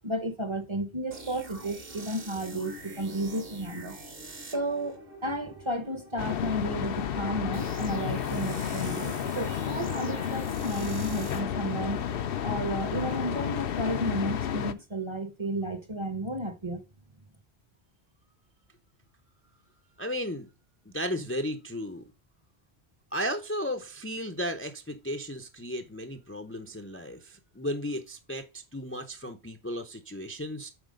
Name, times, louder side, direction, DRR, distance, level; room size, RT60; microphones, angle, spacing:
voice 1, 0.0-4.0 4.5-12.0 12.4-16.8, right 1 dB, 30° right, 0.9 m, -33 dB
sound 1, 1.1-14.8, right 2 dB, 60° right, 1.6 m, -45 dB
sound 2, 6.2-14.7, left 9 dB, 65° left, 0.8 m, -32 dB
voice 2, 20.0-20.5 20.9-22.0 23.1-30.7, equal, 15° left, 0.5 m, -34 dB
7.9 x 4.5 x 5.1 m
omnidirectional pair, 1.1 m